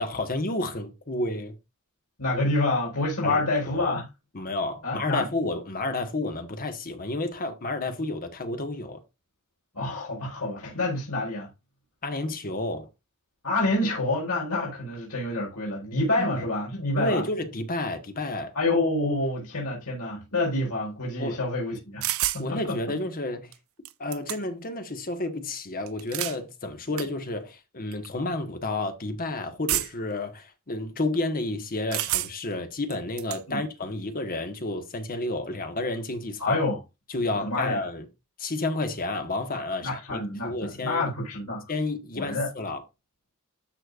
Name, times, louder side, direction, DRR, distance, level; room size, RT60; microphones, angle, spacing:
voice 1, 0.0-1.5 3.2-3.9 4.3-9.0 12.0-12.9 16.1-16.4 17.0-18.5 21.2-21.4 22.4-23.5 24.0-36.6 37.1-38.0 38.4-41.1 41.7-42.8, left 2 dB, 40° left, 1.5 m, -31 dB
voice 2, 2.2-4.0 4.8-5.3 9.7-11.5 13.4-17.3 18.5-22.1 22.3-22.8 33.5-33.6 36.4-36.8 37.4-37.8 39.8-41.6 42.1-42.5, left 2 dB, 80° left, 4.7 m, -27 dB
sound 1, 22.0-22.4 23.5-23.6 23.8-24.7 25.9-26.4 27.0-27.1 27.9-28.1 29.7-30.1 31.9-32.5 32.9-33.4, right 15 dB, 65° right, 0.6 m, -29 dB
13.0 x 4.4 x 2.5 m
head